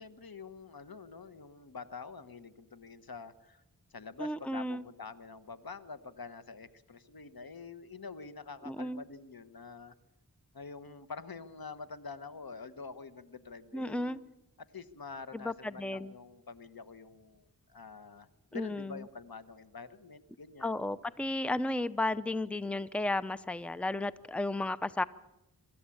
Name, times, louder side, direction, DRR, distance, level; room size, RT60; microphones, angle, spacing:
voice 1, 0.0-3.6 3.9-9.9 10.5-14.1 14.6-20.8, left 4 dB, 75° left, 13 dB, 1.2 m, -47 dB
voice 2, 4.2-4.8 8.7-9.0 13.7-14.2 15.3-16.1 18.5-19.0 20.6-25.0, left 2 dB, 5° left, 15 dB, 0.7 m, -33 dB
25.5 x 13.5 x 8.6 m, 0.90 s
wide cardioid pair, 55°, 37 cm